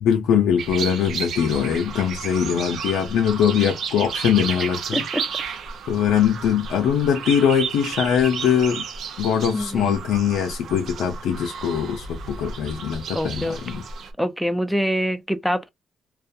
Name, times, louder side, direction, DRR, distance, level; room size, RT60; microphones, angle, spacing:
voice 1, 0.0-5.0 5.9-8.8 9.2-13.8, left 8 dB, 85° left, 0.5 m, -22 dB
sound 1, 0.6-14.1, right 6 dB, 70° right, 0.6 m, -33 dB
voice 2, 4.9-5.3 9.5-10.0 13.1-13.9 14.2-15.7, equal, ahead, 0.4 m, -25 dB
2.3 x 2.2 x 2.6 m
cardioid pair, 90°, 0 cm